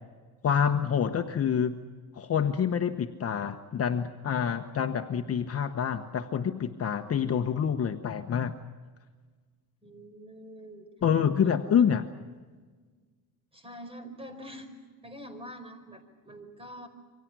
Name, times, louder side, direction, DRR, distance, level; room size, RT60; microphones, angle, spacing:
voice 1, 0.4-1.7 2.2-8.5 11.0-12.0, left 7 dB, 40° left, 6 dB, 1.1 m, -27 dB
voice 2, 9.8-10.9 11.4-11.9 13.5-14.7 15.0-16.9, equal, 15° right, 7 dB, 4.8 m, -45 dB
28.0 x 25.0 x 6.1 m, 1.5 s
cardioid pair, 140°, 38 cm